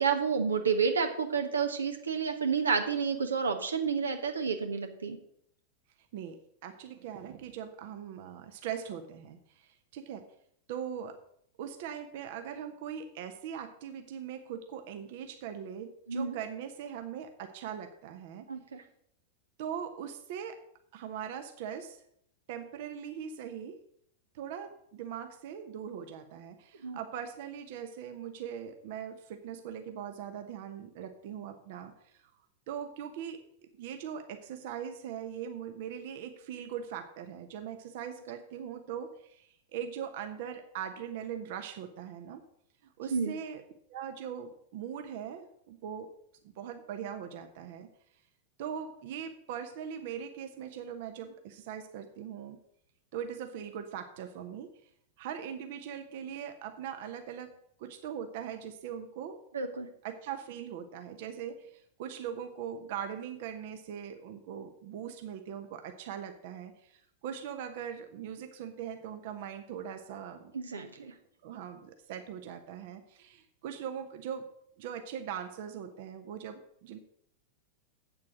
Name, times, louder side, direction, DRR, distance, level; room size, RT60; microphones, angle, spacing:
voice 1, 0.0-5.2 16.1-16.3 18.5-18.8 26.8-27.0 43.1-43.3 59.5-59.9 70.5-71.1, right 5 dB, 75° right, 6 dB, 1.2 m, -30 dB
voice 2, 6.1-10.3 10.7-11.2 11.6-18.5 19.6-20.6 20.9-22.0 22.5-23.8 24.3-32.2 32.7-33.4 33.8-42.4 43.0-43.6 43.9-46.1 46.4-47.9 48.6-52.6 53.1-54.7 55.2-57.5 57.8-59.4 60.0-70.5 71.4-74.5 74.8-77.0, right 8 dB, 50° right, 7 dB, 1.1 m, -41 dB
8.5 x 7.4 x 6.3 m, 0.70 s
figure-of-eight pair, 90°, 0 cm